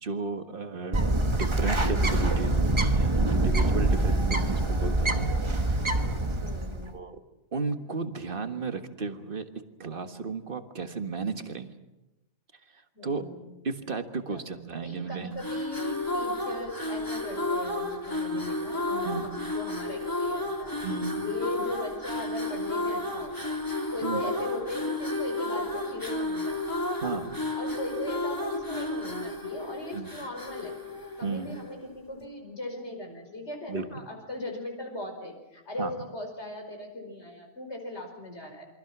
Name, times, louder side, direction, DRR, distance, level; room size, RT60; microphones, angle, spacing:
voice 1, 0.0-5.3 6.9-7.2 7.5-9.5 9.8-11.7 13.0-13.2 13.6-15.3 18.3-18.5 19.1-19.3 20.8-21.3 24.0-24.2 27.0-27.3 29.9-30.1 31.2-31.6 33.7-33.8 35.8-35.9, right 4 dB, 40° right, 7 dB, 1.7 m, -34 dB
Bird, 0.9-6.9, right 2 dB, 20° right, 1.2 m, -25 dB
voice 2, 6.4-7.0 12.9-13.4 14.3-14.5 14.8-20.8 21.2-23.6 23.9-26.6 27.6-30.8 31.2-38.7, left 2 dB, 50° left, 3 dB, 5.4 m, -38 dB
sound 1, 15.3-31.8, left 2 dB, 15° left, 3.2 m, -32 dB
28.0 x 24.0 x 6.1 m, 1.0 s
omnidirectional pair, 1.4 m